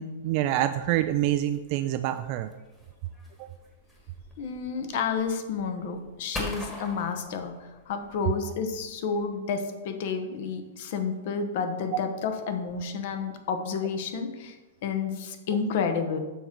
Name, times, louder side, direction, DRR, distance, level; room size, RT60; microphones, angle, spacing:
voice 1, 0.0-2.5 3.4-3.5, right 12 dB, 45° right, 9 dB, 0.3 m, -26 dB
sound 1, 0.9-9.2, left 1 dB, 10° left, 1.5 m, -43 dB
voice 2, 4.4-14.6 14.8-16.2, left 5 dB, 55° left, 6 dB, 1.0 m, -30 dB
6.9 x 3.8 x 5.9 m, 1.2 s
hypercardioid pair, 140°, 0 cm